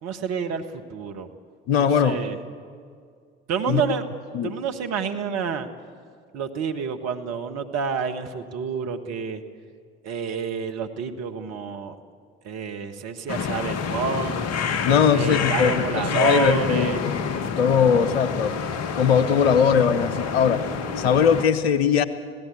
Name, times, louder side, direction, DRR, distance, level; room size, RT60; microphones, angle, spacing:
voice 1, 0.0-1.3 1.8-2.4 3.5-4.0 4.4-5.7 6.3-9.4 10.0-12.0 12.4-14.4 15.1-17.0, right 6 dB, 55° right, 7 dB, 1.6 m, -28 dB
voice 2, 1.7-2.2 3.7-3.8 4.3-4.5 14.8-17.0 17.6-18.5 18.9-20.6 21.0-22.0, left 7 dB, 80° left, 14 dB, 1.0 m, -20 dB
sound 1, 13.3-21.5, left 6 dB, 55° left, 1.5 m, -28 dB
26.0 x 17.5 x 8.4 m, 2.2 s
hypercardioid pair, 55°, 30 cm